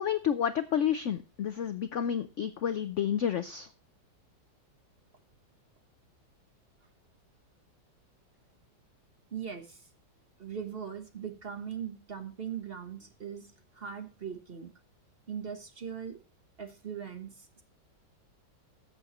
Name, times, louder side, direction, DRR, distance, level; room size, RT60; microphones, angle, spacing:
voice 1, 0.0-3.7, left 9 dB, 65° left, 11 dB, 0.7 m, -30 dB
voice 2, 9.3-9.8 10.4-14.7 15.3-16.2 16.6-17.6, right 7 dB, 35° right, 7 dB, 1.2 m, -40 dB
14.0 x 7.2 x 3.0 m, 0.34 s
omnidirectional pair, 1.9 m